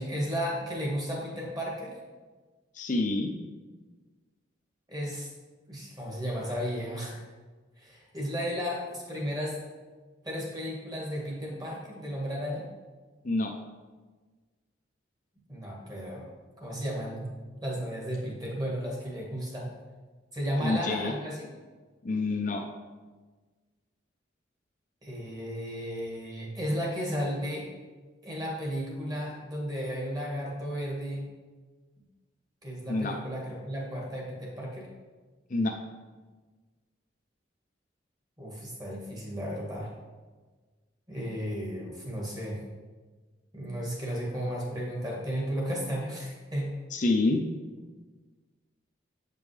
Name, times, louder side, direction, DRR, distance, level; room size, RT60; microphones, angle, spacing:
voice 1, 0.0-2.0 4.9-5.3 5.7-7.2 7.8-9.6 10.2-12.7 15.5-17.3 17.6-19.7 20.3-21.5 25.0-27.7 28.2-31.2 32.6-34.9 38.4-39.9 41.1-42.6 43.5-46.7, equal, 20° right, -2 dB, 1.6 m, -34 dB
voice 2, 2.7-3.3 13.2-13.5 20.6-21.1 22.0-22.6 32.9-33.1 35.5-35.7 46.9-47.4, left 2 dB, 40° left, 2 dB, 0.5 m, -27 dB
8.4 x 5.3 x 3.3 m, 1.3 s
head